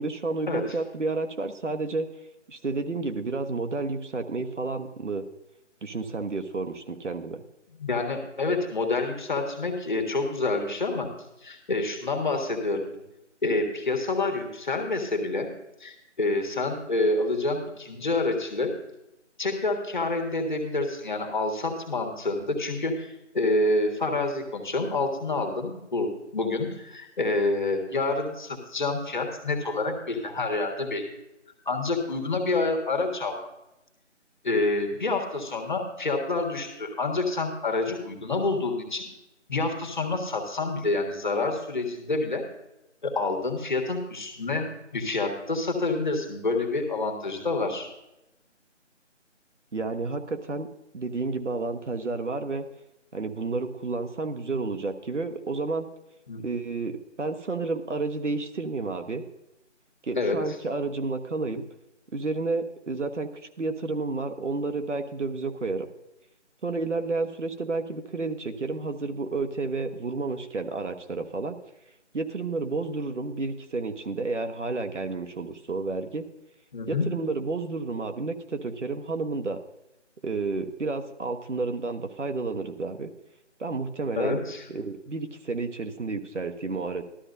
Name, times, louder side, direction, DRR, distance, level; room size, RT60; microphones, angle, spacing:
voice 1, 0.0-2.1 2.5-5.2 5.8-7.4 49.7-50.7 50.9-52.7 53.1-55.9 56.4-59.2 60.0-61.7 62.1-63.3 63.6-65.9 66.6-71.6 72.1-76.3 76.9-79.6 80.2-83.1 83.6-84.4 84.7-87.0, right 3 dB, 70° right, 7 dB, 1.2 m, -31 dB
voice 2, 7.8-11.1 11.4-12.8 13.4-15.5 15.8-18.7 19.4-31.0 31.6-33.4 34.4-39.1 39.5-42.4 43.0-44.7 44.9-47.9 56.3-56.4 60.1-60.4 76.7-77.1 84.1-84.6, left 2 dB, 40° left, 4 dB, 1.7 m, -27 dB
14.0 x 13.0 x 2.7 m, 0.89 s
figure-of-eight pair, 170°, 37 cm